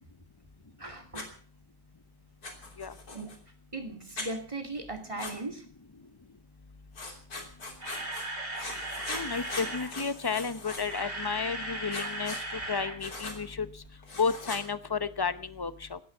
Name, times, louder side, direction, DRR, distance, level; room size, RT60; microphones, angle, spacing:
voice 1, 0.8-1.3 3.1-3.3 3.7-5.6, right 2 dB, 20° right, 6 dB, 2.5 m, -38 dB
Writing, 1.1-1.3 2.4-3.4 4.2-4.3 5.2-5.3 6.9-8.3 8.5-11.0 11.9-12.4 13.0-13.4 14.0-14.6, left 2 dB, 75° left, 3.7 m, -40 dB
Camera, 7.5-9.9 10.7-13.0 13.2-13.4 13.8-13.9, right 1 dB, 45° right, 4.5 m, -37 dB
voice 2, 9.1-12.3 12.7-13.7 14.2-16.0, left 5 dB, 25° left, 13 dB, 0.6 m, -32 dB
18.5 x 11.0 x 7.0 m, 0.42 s
omnidirectional pair, 1.6 m